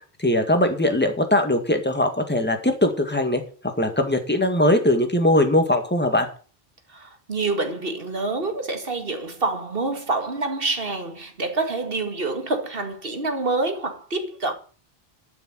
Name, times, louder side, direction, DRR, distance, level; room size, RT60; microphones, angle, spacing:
voice 1, 0.2-3.4 3.8-6.3, left 1 dB, 10° left, 1.9 m, -20 dB
voice 2, 6.9-14.5, right 3 dB, 65° right, 2.2 m, -27 dB
12.0 x 6.9 x 6.3 m
omnidirectional pair, 1.0 m